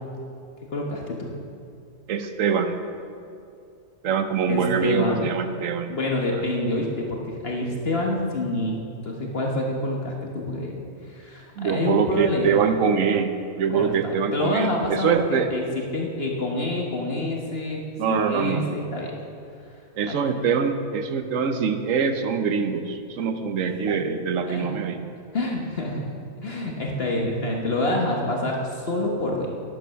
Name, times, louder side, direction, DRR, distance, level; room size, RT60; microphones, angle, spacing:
voice 1, 0.7-1.3 4.5-5.4 5.9-8.8 9.0-10.8 11.1-12.5 13.7-17.8 18.1-19.1 20.0-20.2 24.5-24.7 25.3-26.0 26.4-29.5, left 1 dB, 50° left, 0 dB, 1.4 m, -27 dB
voice 2, 2.1-2.8 4.0-5.9 11.6-13.3 13.6-15.5 18.0-18.7 20.0-25.0, right 6 dB, 70° right, 8 dB, 1.2 m, -24 dB
11.5 x 10.0 x 5.7 m, 2.6 s
omnidirectional pair, 1.4 m